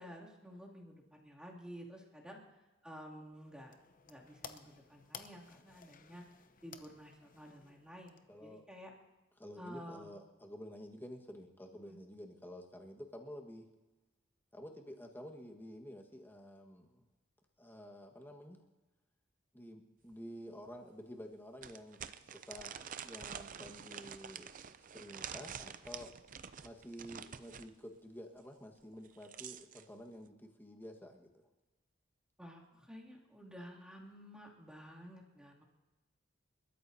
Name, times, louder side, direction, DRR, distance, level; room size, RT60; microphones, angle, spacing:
voice 1, 0.0-3.8 4.1-6.2 6.6-8.9 9.6-10.1 11.9-12.0 32.4-35.6, equal, 5° right, -4 dB, 2.6 m, -52 dB
sound 1, 3.2-8.6, left 6 dB, 45° left, 0.8 m, -55 dB
voice 2, 8.3-8.6 9.4-13.7 14.5-17.0 17.6-18.6 19.5-22.0 22.3-24.5 24.9-26.1 26.6-31.4, equal, 10° left, 1 dB, 1.5 m, -50 dB
sound 2, 20.1-20.2 20.7-20.8 21.6-27.7 28.9-29.8, right 8 dB, 45° right, 0.5 m, -47 dB
29.0 x 13.5 x 2.8 m, 1.1 s
head